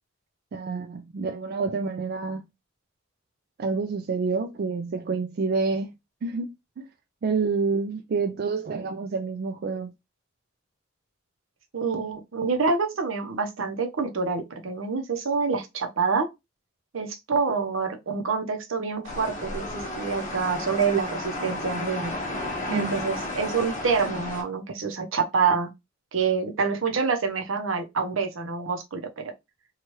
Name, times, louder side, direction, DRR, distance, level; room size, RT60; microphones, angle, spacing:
voice 1, 0.5-2.4 3.6-5.9 6.2-6.8 7.2-9.9 22.7-23.0, right 4 dB, 50° right, 0.3 m, -28 dB
voice 2, 11.7-16.3 16.9-22.1 22.7-25.7 26.1-29.3, right 5 dB, 80° right, 0.7 m, -27 dB
sound 1, 19.0-24.4, left 1 dB, 40° left, 0.8 m, -33 dB
3.0 x 2.3 x 3.0 m
head